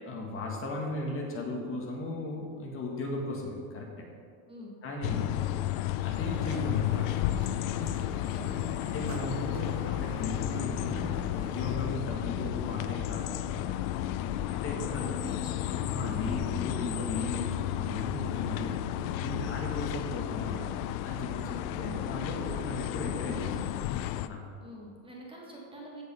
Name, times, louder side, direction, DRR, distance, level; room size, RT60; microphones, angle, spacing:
voice 1, 0.1-4.1 4.8-5.3 6.0-7.6 8.8-13.7 14.2-15.1 15.7-18.8 19.2-20.6 21.0-24.0 24.3-24.4, left 2 dB, 30° left, 0 dB, 1.8 m, -36 dB
sound 1, 5.0-24.3, left 12 dB, 70° left, 0.6 m, -32 dB
sound 2, 6.3-11.8, right 10 dB, 40° right, 0.5 m, -47 dB
voice 2, 8.2-8.6 14.6-16.4 19.2-19.5 24.6-26.0, right 1 dB, 10° right, -3 dB, 1.7 m, -46 dB
16.0 x 5.4 x 5.4 m, 2.2 s
supercardioid pair, 150°, 43 cm